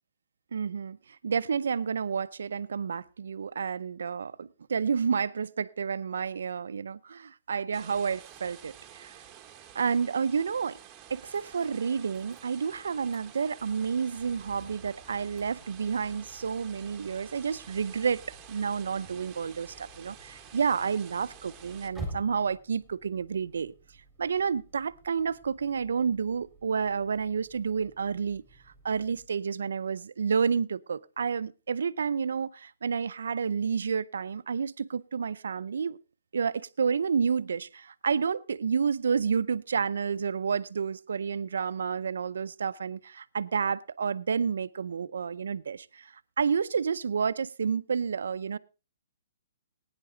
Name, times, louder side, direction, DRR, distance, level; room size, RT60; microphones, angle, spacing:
voice 1, 0.5-1.0 1.2-9.1 9.7-10.8 11.1-18.2 18.5-23.7 24.2-28.4 28.8-36.0 36.3-48.6, right 6 dB, 85° right, 0.5 m, -30 dB
sound 1, 7.7-21.9, right 10 dB, 20° right, 1.3 m, -50 dB
sound 2, 11.3-29.3, right 1 dB, 5° left, 3.7 m, -50 dB
18.0 x 9.7 x 3.9 m
hypercardioid pair, 160°, 0 cm